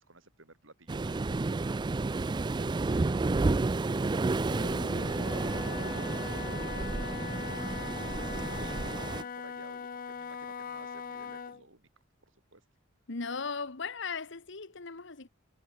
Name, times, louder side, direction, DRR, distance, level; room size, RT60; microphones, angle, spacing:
voice 1, 0.0-7.3 7.6-11.9 12.2-12.6, right 3 dB, 75° right, 4.0 m, -55 dB
Waves surf, 0.9-9.2, right 3 dB, 20° right, 0.4 m, -31 dB
Wind instrument woodwind instrument, 4.4-11.6, left 6 dB, 45° left, 0.5 m, -40 dB
voice 2, 13.1-15.3, left 4 dB, 65° left, 1.4 m, -37 dB
head